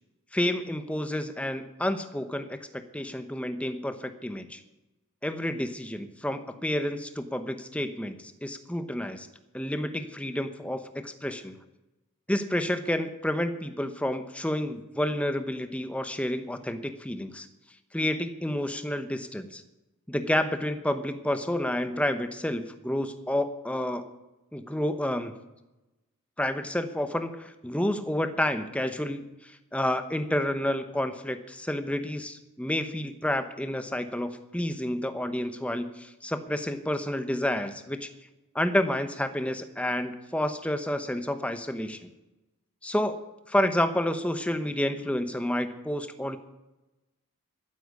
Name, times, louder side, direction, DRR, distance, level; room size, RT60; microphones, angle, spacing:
voice 1, 0.3-4.6 5.2-9.3 9.5-11.6 12.3-17.5 17.9-19.6 20.1-24.1 24.5-25.3 26.4-38.1 38.5-42.1 42.8-43.2 43.5-46.4, left 1 dB, 5° left, 9 dB, 0.8 m, -30 dB
12.0 x 10.0 x 8.4 m, 1.0 s
head